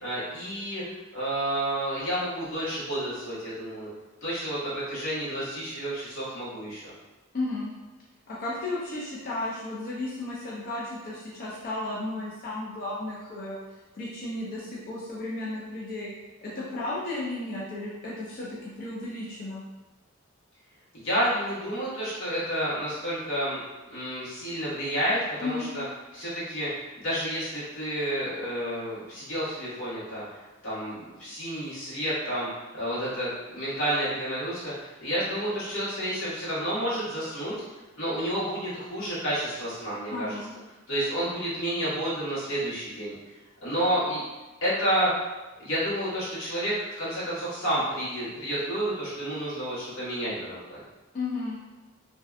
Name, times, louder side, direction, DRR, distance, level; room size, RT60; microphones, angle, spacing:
voice 1, 0.0-0.8 1.1-3.9 4.2-6.9 20.9-23.6 23.9-25.8 26.1-30.2 30.6-37.6 38.0-40.4 40.9-43.1 43.6-44.2 44.6-45.1 45.6-50.8, right 1 dB, 85° left, -10 dB, 1.2 m, -30 dB
voice 2, 7.3-7.7 8.3-13.6 13.9-16.1 16.4-19.6 25.4-25.7 40.1-40.5 51.1-51.6, left 2 dB, 45° left, -6 dB, 0.4 m, -34 dB
2.6 x 2.2 x 2.3 m, 1.2 s
head